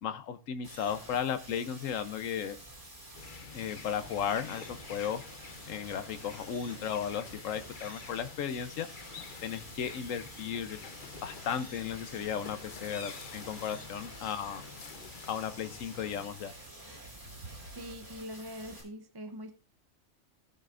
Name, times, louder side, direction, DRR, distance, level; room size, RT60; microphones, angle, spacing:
voice 1, 0.0-2.6 3.5-5.2 5.7-8.9 9.4-10.8 11.2-14.6 15.3-16.5, left 8 dB, 85° left, 10 dB, 1.2 m, -35 dB
sound 1, 0.6-18.8, right 1 dB, 40° right, 4.6 m, -50 dB
sound 2, 3.1-16.3, left 5 dB, 45° left, 1.0 m, -48 dB
Waves surf, 10.5-18.1, right 3 dB, 70° right, 1.8 m, -56 dB
voice 2, 17.8-19.5, equal, 25° right, 7 dB, 0.6 m, -43 dB
18.5 x 6.4 x 2.5 m, 0.32 s
omnidirectional pair, 1.3 m